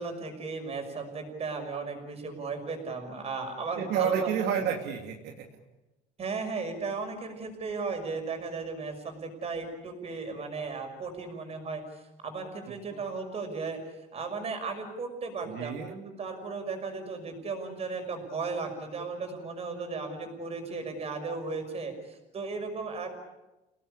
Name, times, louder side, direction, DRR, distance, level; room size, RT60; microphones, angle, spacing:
voice 1, 0.0-4.3 6.2-13.8 14.1-23.1, right 4 dB, 35° right, 5 dB, 5.9 m, -35 dB
voice 2, 3.8-5.5 12.9-13.0 15.5-15.9, right 8 dB, 80° right, 2 dB, 2.7 m, -30 dB
29.5 x 18.0 x 8.6 m, 0.99 s
cardioid pair, 140°, 17 cm